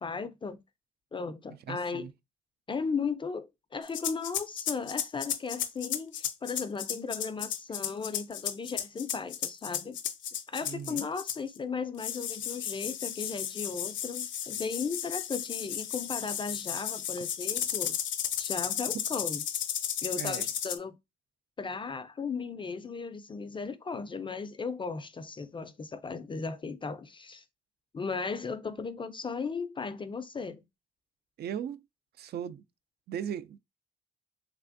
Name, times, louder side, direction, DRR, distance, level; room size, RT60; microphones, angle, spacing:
voice 1, 0.0-0.6 1.1-2.1 2.7-10.0 10.5-18.0 18.4-19.4 20.0-20.9 21.6-27.4 27.9-30.6, left 5 dB, 25° left, 0.4 m, -36 dB
voice 2, 1.7-2.1 10.6-11.0 20.2-20.5 31.4-31.8 32.2-32.6 33.1-33.6, right 9 dB, 55° right, 0.4 m, -37 dB
sound 1, 3.9-11.6 12.0-20.8, left 10 dB, 75° left, 0.6 m, -34 dB
3.3 x 3.3 x 2.5 m
cardioid pair, 90°, 20 cm